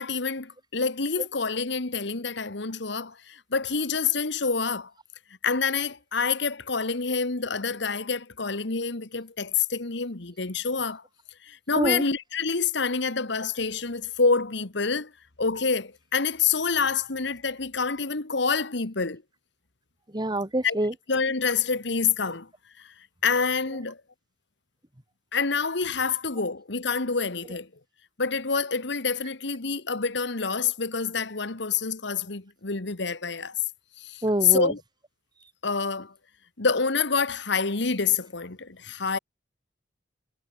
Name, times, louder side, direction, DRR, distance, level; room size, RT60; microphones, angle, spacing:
voice 1, 0.0-4.9 5.4-11.0 11.4-15.1 15.4-19.2 20.6-20.8 21.1-22.5 22.8-22.9 23.2-24.0 25.3-27.7 28.2-33.6 34.0-34.8 35.6-36.1 36.6-39.2, left 5 dB, 65° left, 1.7 m, -27 dB
voice 2, 20.1-20.9 34.2-34.7, right 1 dB, 25° right, 1.9 m, -26 dB
head